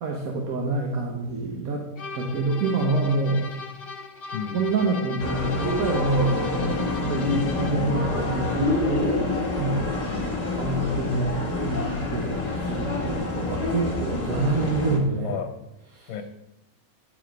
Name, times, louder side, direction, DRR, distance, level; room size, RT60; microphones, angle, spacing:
voice 1, 0.0-1.9 2.1-3.5 4.5-10.2 10.6-12.4 12.7-15.4 15.9-16.1, right 3 dB, 80° right, 0 dB, 1.5 m, -27 dB
sound 1, 2.0-7.9, left 4 dB, 50° left, 0.8 m, -38 dB
voice 2, 4.3-4.6 7.6-8.1 10.1-10.8 15.2-15.5 16.1-16.2, left 7 dB, 75° left, 7 dB, 1.2 m, -34 dB
sound 2, 5.2-15.0, left 2 dB, 30° left, 1.4 m, -27 dB
9.8 x 4.8 x 5.1 m, 0.89 s
omnidirectional pair, 1.5 m